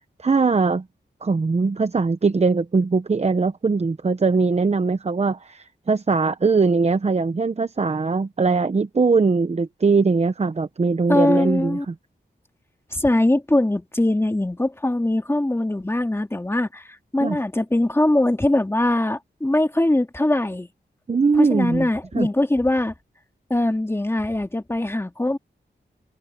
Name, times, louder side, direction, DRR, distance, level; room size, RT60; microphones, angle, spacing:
voice 1, 0.2-0.8 1.2-11.9 17.2-17.4 21.1-21.9 22.1-22.3, right 4 dB, 35° right, 0.8 m, -21 dB
voice 2, 11.1-11.9 12.9-20.7 21.4-22.9 23.5-25.4, left 1 dB, 15° left, 2.2 m, -21 dB
wide cardioid pair, 110°, 18 cm